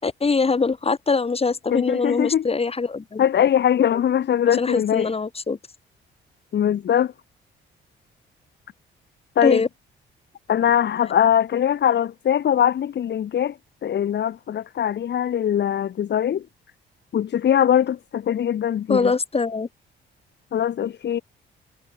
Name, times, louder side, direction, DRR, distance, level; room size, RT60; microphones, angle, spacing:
voice 1, 0.0-3.2 3.8-4.0 4.5-5.6 9.4-9.7 18.9-19.7, left 4 dB, 30° left, 6.2 m, -23 dB
voice 2, 1.7-2.4 3.2-5.1 6.5-7.1 9.4-9.6 10.5-13.6 13.8-16.4 17.1-19.1 20.5-21.2, left 9 dB, 60° left, 2.4 m, -21 dB
cardioid pair, 90°, 20 cm